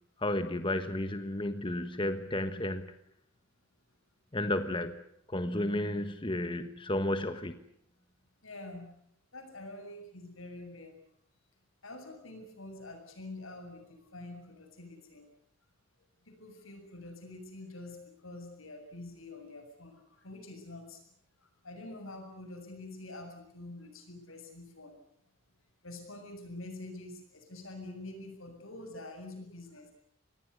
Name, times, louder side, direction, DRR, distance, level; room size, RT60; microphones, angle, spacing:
voice 1, 0.2-2.9 4.3-4.9 5.3-7.5, left 1 dB, 25° left, 9 dB, 1.4 m, -32 dB
voice 2, 8.4-8.9 9.3-11.0 11.8-15.3 16.3-21.1 21.4-25.0 25.8-29.9, left 2 dB, 90° left, 6 dB, 7.5 m, -46 dB
26.0 x 20.0 x 8.4 m, 0.69 s
head